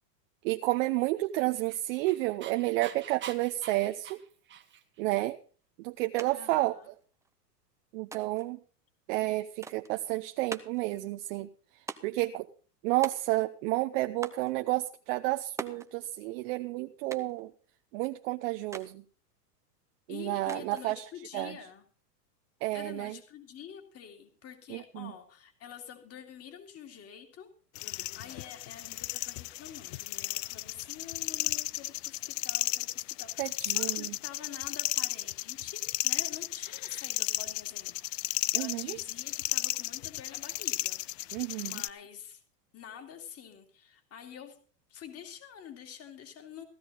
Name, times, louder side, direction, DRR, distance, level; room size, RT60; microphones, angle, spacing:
voice 1, 0.4-4.2 5.0-5.4 5.8-6.7 7.9-8.6 9.1-11.5 12.0-12.5 12.8-17.5 17.9-19.0 20.1-21.0 21.3-21.6 22.6-23.1 24.7-25.1 33.4-34.2 38.5-39.0 41.3-41.8, right 19 dB, 50° right, 7 dB, 0.9 m, -31 dB
Dog, 1.2-5.0, right 9 dB, 25° right, 1.5 m, -46 dB
sound 1, 6.2-6.3 6.6-7.3 8.1-8.5 9.6-9.9 10.5-10.9 11.9-12.3 13.0-13.6 14.2-14.5 15.6-15.9 17.1-17.4 18.7-18.9 20.5-20.9, right 4 dB, 5° right, 0.6 m, -42 dB
voice 2, 6.3-6.9 20.1-21.8 22.7-27.5 27.8-38.3 38.5-41.0 41.6-42.4 42.7-44.6 44.9-46.6, left 8 dB, 30° left, 6 dB, 2.6 m, -47 dB
sound 2, 27.7-41.9, left 19 dB, 55° left, 0.5 m, -34 dB
15.5 x 13.0 x 3.9 m, 0.40 s
hypercardioid pair, 130°, 49 cm